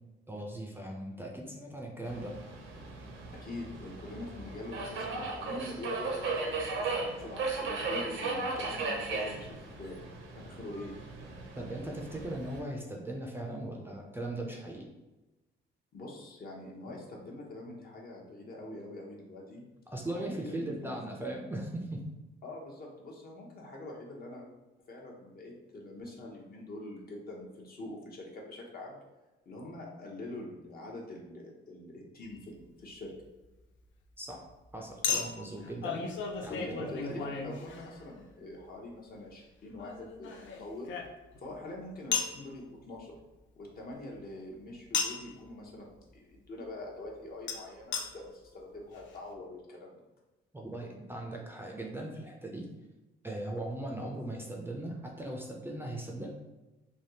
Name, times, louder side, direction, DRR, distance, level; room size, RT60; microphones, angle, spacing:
voice 1, 0.3-2.4 11.6-14.9 19.9-22.0 34.2-34.4 34.7-37.2 50.5-52.7 53.2-56.3, right 1 dB, 10° right, -1 dB, 0.4 m, -39 dB
Subway metro underground, 2.0-12.6, right 3 dB, 75° right, 0.7 m, -37 dB
voice 2, 3.4-6.9 7.2-10.0 10.4-10.9 15.9-19.7 20.1-20.8 22.4-24.4 24.9-29.0 29.5-33.1 36.5-40.9 41.4-43.2 43.6-50.0, left 2 dB, 50° left, -1 dB, 0.8 m, -44 dB
Chink clink, 32.2-32.4 35.0-38.2 39.8-41.5 42.1-42.4 44.9-45.3 47.5-47.6 47.9-48.0 48.7-48.8 49.0-49.1, left 6 dB, 70° left, 0.5 m, -35 dB
3.4 x 2.3 x 2.7 m, 1.1 s
cardioid pair, 90°, 20 cm